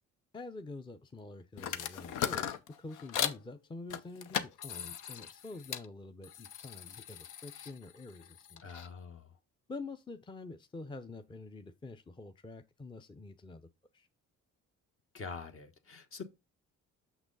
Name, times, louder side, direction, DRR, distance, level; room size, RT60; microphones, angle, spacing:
voice 1, 0.3-8.7 9.7-13.7 13.9-14.1, left 3 dB, 15° left, 0.6 m, -47 dB
sound 1, 1.6-3.4 3.9-5.9 6.2-8.9, left 9 dB, 85° left, 0.7 m, -38 dB
voice 2, 8.6-9.3 15.1-16.2, left 5 dB, 45° left, 1.2 m, -45 dB
6.4 x 6.0 x 3.9 m
cardioid pair, 90°, 30 cm